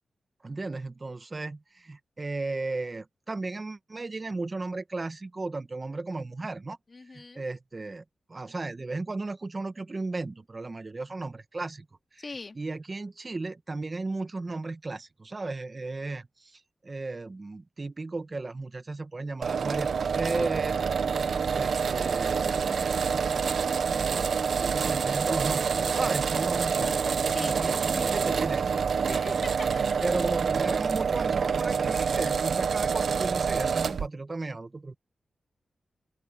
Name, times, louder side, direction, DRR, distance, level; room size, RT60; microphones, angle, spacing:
voice 1, 0.4-6.8 7.1-8.0 8.3-11.8 12.1-12.3 12.5-20.8 21.5-23.4 23.8-28.7 30.0-34.9, right 3 dB, 30° right, 1.3 m, -35 dB
voice 2, 6.9-7.5 12.2-12.6 26.8-28.5 29.1-30.0, left 3 dB, 40° left, 2.1 m, -41 dB
sound 1, 19.4-34.1, right 6 dB, 75° right, 0.8 m, -27 dB
open air
wide cardioid pair, 105°, 0 cm